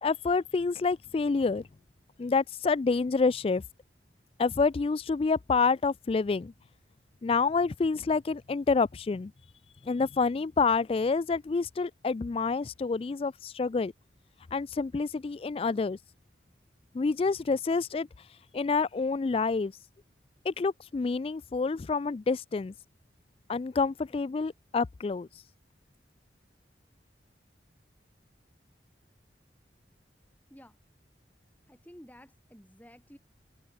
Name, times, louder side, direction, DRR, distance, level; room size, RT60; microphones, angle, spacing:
voice 1, 0.0-1.6 2.2-3.6 4.4-6.5 7.2-9.3 9.8-13.9 14.5-16.0 16.9-19.7 20.5-22.7 23.5-25.4, left 4 dB, 30° left, 0.3 m, -28 dB
voice 2, 31.7-33.2, equal, 10° left, 5.4 m, -52 dB
open air
head